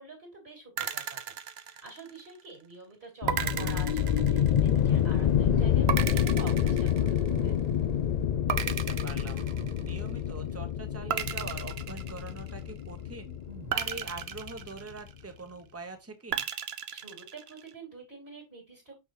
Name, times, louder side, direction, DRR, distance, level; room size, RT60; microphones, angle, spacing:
voice 1, 0.0-1.4 1.7-7.5 16.9-19.0, right 4 dB, 60° right, 3.1 m, -47 dB
sound 1, 0.8-2.4 3.3-4.9 5.9-7.6 8.5-10.1 11.1-12.8 13.7-15.4 16.3-17.7, right 8 dB, 75° right, 1.0 m, -35 dB
sound 2, 3.2-14.7, left 9 dB, 55° left, 0.5 m, -28 dB
sound 3, 3.3-4.3 5.4-6.1 7.2-8.1 9.2-10.3 11.3-11.9 13.5-14.2, right 4 dB, 40° right, 1.0 m, -45 dB
voice 2, 8.6-9.5 9.8-13.4 13.7-16.5, right 3 dB, 15° right, 1.0 m, -43 dB
6.3 x 5.8 x 3.0 m
omnidirectional pair, 1.1 m